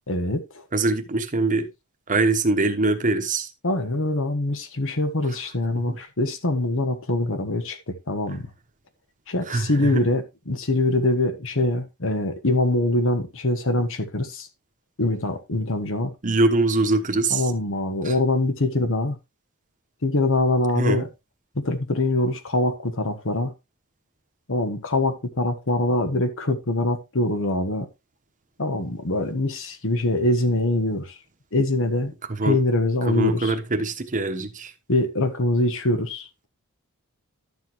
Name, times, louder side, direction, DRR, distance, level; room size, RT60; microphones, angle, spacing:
voice 1, 0.1-0.6 3.6-8.5 9.3-14.5 15.0-16.1 17.3-19.2 20.0-21.1 21.5-23.5 24.5-27.9 28.6-31.2 31.5-32.1 32.4-33.5 34.9-36.5, left 2 dB, 65° left, 1.4 m, -24 dB
voice 2, 0.7-1.7 2.1-3.5 5.9-6.0 9.5-9.7 9.9-10.0 16.2-17.4 18.0-18.1 20.8-21.1 32.4-32.6 33.1-34.7, right 2 dB, 35° right, 1.1 m, -23 dB
12.0 x 7.0 x 3.1 m
head